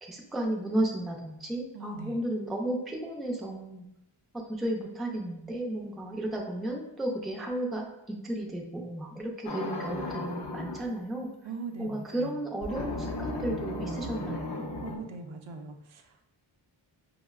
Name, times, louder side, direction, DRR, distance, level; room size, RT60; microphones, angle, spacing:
voice 1, 0.0-3.9 4.3-11.3 11.8-14.6, right 1 dB, ahead, 0 dB, 0.3 m, -33 dB
voice 2, 1.7-2.2 11.4-12.5 14.8-16.2, right 4 dB, 75° right, 4 dB, 0.5 m, -41 dB
sound 1, 9.5-10.9 12.6-15.0, left 1 dB, 60° left, 0.6 m, -35 dB
5.0 x 2.0 x 2.3 m, 0.85 s
wide cardioid pair, 90°, 48 cm